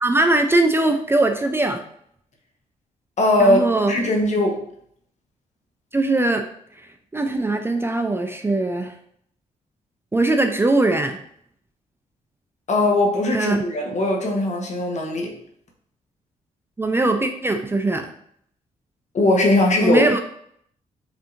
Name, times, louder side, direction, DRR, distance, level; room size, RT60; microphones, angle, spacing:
voice 1, 0.0-1.8 3.4-4.0 5.9-6.4 7.1-8.9 10.1-11.2 13.3-13.6 16.8-18.1 19.8-20.2, right 2 dB, 15° right, 5 dB, 0.3 m, -20 dB
voice 2, 3.2-3.6 3.9-4.6 12.7-15.3 19.1-20.0, left 1 dB, 50° left, 1 dB, 1.0 m, -19 dB
5.0 x 2.7 x 2.5 m, 0.67 s
cardioid pair, 80°, 15 cm